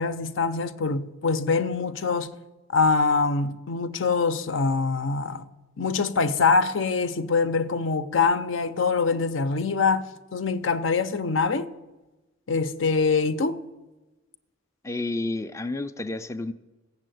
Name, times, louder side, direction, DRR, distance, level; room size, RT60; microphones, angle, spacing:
voice 1, 0.0-2.3 2.7-5.4 5.8-11.7 12.5-13.6, left 4 dB, 70° left, 0.7 m, -24 dB
voice 2, 14.8-16.5, left 2 dB, 15° left, 0.4 m, -30 dB
15.5 x 7.2 x 9.2 m
head